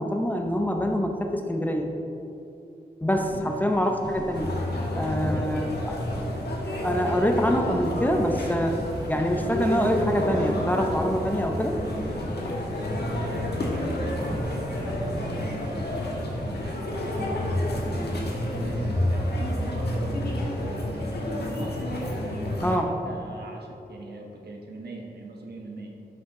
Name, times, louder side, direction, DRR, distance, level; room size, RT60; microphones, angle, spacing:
voice 1, 0.0-1.9 3.0-4.5 4.9-5.9 6.8-8.8 9.1-11.7 22.6-22.9, equal, 10° left, 3 dB, 0.7 m, -25 dB
sound 1, 3.2-20.7, right 1 dB, 25° right, 0.7 m, -41 dB
voice 2, 3.3-3.8 4.6-6.0 13.1-21.8 22.4-25.9, right 2 dB, 80° right, 0 dB, 1.3 m, -41 dB
sound 2, 4.3-22.8, left 1 dB, 80° left, 1.4 m, -29 dB
12.0 x 5.7 x 3.8 m, 2.9 s
wide cardioid pair, 105°, 17 cm